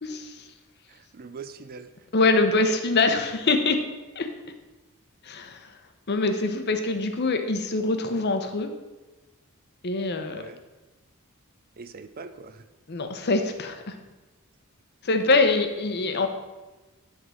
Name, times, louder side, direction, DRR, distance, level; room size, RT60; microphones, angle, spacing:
voice 1, 0.0-0.5 2.1-3.9 4.1-4.3 5.2-5.7 6.1-8.7 9.8-10.4 12.9-14.0 15.0-16.3, left 3 dB, 50° left, 6 dB, 0.8 m, -24 dB
voice 2, 0.9-1.9 10.3-10.6 11.8-12.6 16.1-16.3, right 4 dB, 40° right, 11 dB, 0.4 m, -42 dB
11.0 x 3.8 x 6.2 m, 1.2 s
head